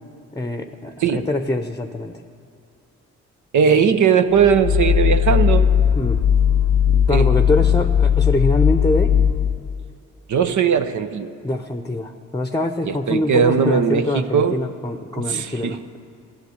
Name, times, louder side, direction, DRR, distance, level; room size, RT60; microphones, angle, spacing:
voice 1, 0.3-2.2 6.0-6.2 7.1-9.2 11.4-15.8, left 2 dB, 10° left, 7 dB, 0.8 m, -24 dB
voice 2, 3.5-5.7 7.1-7.3 10.3-11.3 12.9-14.6 15.2-15.8, right 7 dB, 60° right, 9 dB, 0.8 m, -19 dB
sound 1, 4.4-9.8, left 8 dB, 50° left, 0.6 m, -17 dB
14.5 x 6.6 x 9.7 m, 2.6 s
hypercardioid pair, 45°, 35 cm